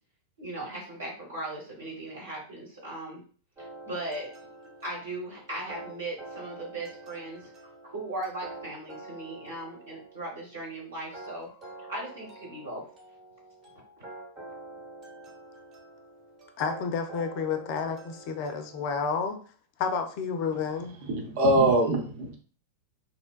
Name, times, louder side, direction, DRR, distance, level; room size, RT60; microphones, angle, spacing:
voice 1, 0.4-3.2 3.6-4.5 4.8-7.5 7.8-11.5 11.9-12.8, right 2 dB, 70° right, -4 dB, 1.3 m, -38 dB
sound 1, 3.6-18.9, right 2 dB, 35° right, 1.1 m, -47 dB
voice 2, 16.6-19.4 19.8-21.0, left 5 dB, 45° left, 7 dB, 0.4 m, -30 dB
voice 3, 21.0-22.4, right 1 dB, 55° right, 1 dB, 0.7 m, -23 dB
2.9 x 2.2 x 2.3 m, 0.41 s
figure-of-eight pair, 90°, 0 cm